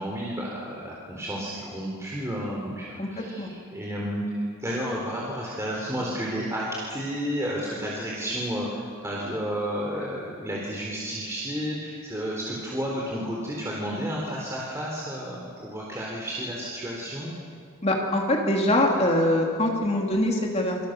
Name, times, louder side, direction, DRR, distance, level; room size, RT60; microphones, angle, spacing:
voice 1, 0.0-3.4 3.7-17.3, equal, 15° right, -4 dB, 3.8 m, -31 dB
voice 2, 3.0-3.5 17.8-20.8, left 1 dB, 30° left, 0 dB, 2.8 m, -23 dB
28.0 x 25.5 x 6.7 m, 2.2 s
head